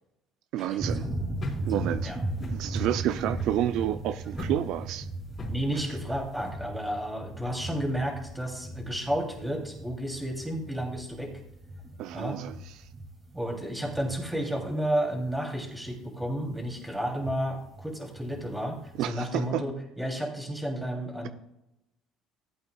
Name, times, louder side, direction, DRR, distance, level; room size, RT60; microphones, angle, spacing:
voice 1, 0.5-1.1 1.6-2.1 2.4-5.1 12.0-12.9 19.0-19.6, right 12 dB, 70° right, 0.4 m, -30 dB
sound 1, 0.8-19.0, right 2 dB, 25° right, 2.5 m, -37 dB
sound 2, 1.4-6.5, left 2 dB, 35° left, 4.1 m, -41 dB
voice 2, 5.5-11.4 12.1-12.4 13.3-21.3, equal, 5° right, 2.9 m, -32 dB
15.0 x 8.3 x 2.3 m
cardioid pair, 100°, 0 cm